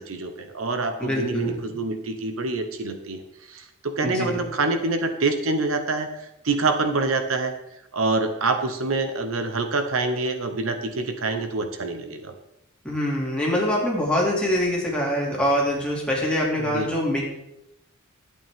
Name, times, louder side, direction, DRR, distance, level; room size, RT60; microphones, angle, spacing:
voice 1, 0.0-3.2 3.5-7.5 7.9-12.3 16.6-16.9, right 3 dB, 75° right, 7 dB, 0.9 m, -26 dB
voice 2, 1.0-1.6 4.0-4.4 12.8-17.3, left 1 dB, 5° left, -4 dB, 2.6 m, -24 dB
11.5 x 8.4 x 3.6 m, 0.84 s
head